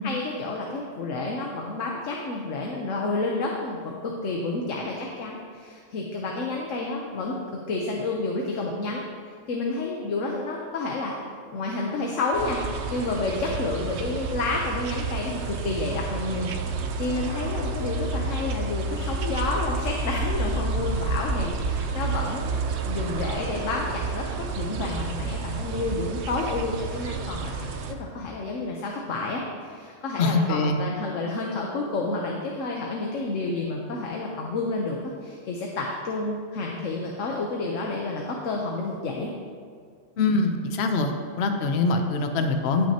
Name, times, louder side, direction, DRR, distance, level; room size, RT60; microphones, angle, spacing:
voice 1, 0.0-9.0 9.5-11.2 11.5-12.6 12.9-16.5 17.0-27.7 28.0-39.3, left 3 dB, 85° left, -1 dB, 1.2 m, -30 dB
sound 1, 12.3-27.9, right 3 dB, 65° right, 1.0 m, -30 dB
voice 2, 30.2-30.8 40.2-41.1 41.4-42.9, left 3 dB, 60° left, 5 dB, 0.9 m, -23 dB
16.0 x 6.1 x 2.9 m, 2.1 s
omnidirectional pair, 1.3 m